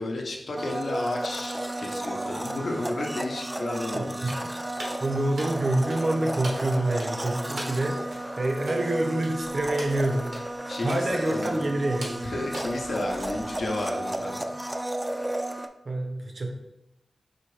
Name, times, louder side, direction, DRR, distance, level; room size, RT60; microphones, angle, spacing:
voice 1, 0.0-4.3 10.7-11.7 12.2-14.5, left 2 dB, 75° left, 0 dB, 0.6 m, -32 dB
Domestic sounds home sounds, 0.6-15.7, right 1 dB, 20° right, 0.3 m, -33 dB
voice 2, 3.9-4.4 5.0-10.4 10.6-12.2 15.9-16.5, right 1 dB, 55° right, 2 dB, 0.6 m, -27 dB
sound 1, 4.2-13.9, right 1 dB, 90° right, 1.0 m, -43 dB
4.1 x 2.7 x 3.2 m, 0.89 s
cardioid pair, 45°, 0 cm